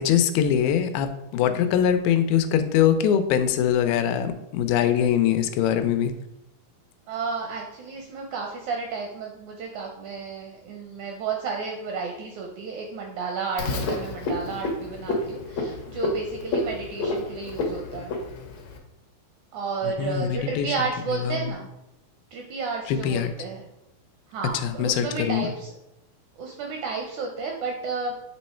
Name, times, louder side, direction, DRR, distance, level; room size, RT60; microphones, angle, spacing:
voice 1, 0.0-6.1 20.0-20.7 21.3-21.5 22.9-23.3 24.6-25.5, left 9 dB, 85° left, 9 dB, 2.4 m, -23 dB
voice 2, 7.1-18.1 19.5-21.7 22.3-23.7 24.3-25.7 26.4-28.1, right 4 dB, 80° right, 1 dB, 1.7 m, -32 dB
Frog, 13.6-18.8, left 2 dB, 70° left, 1.7 m, -30 dB
7.6 x 3.1 x 4.3 m, 0.87 s
omnidirectional pair, 4.1 m